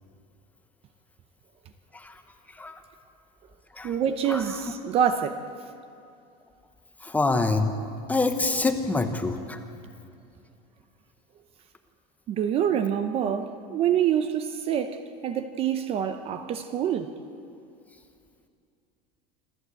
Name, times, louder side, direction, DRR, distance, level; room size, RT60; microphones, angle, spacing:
voice 1, 3.8-5.4 12.3-17.1, right 9 dB, 25° right, 0.7 m, -26 dB
voice 2, 7.0-7.8 8.1-9.6, left 3 dB, 5° left, 0.9 m, -25 dB
26.0 x 14.0 x 8.2 m
cardioid pair, 175°, 21 cm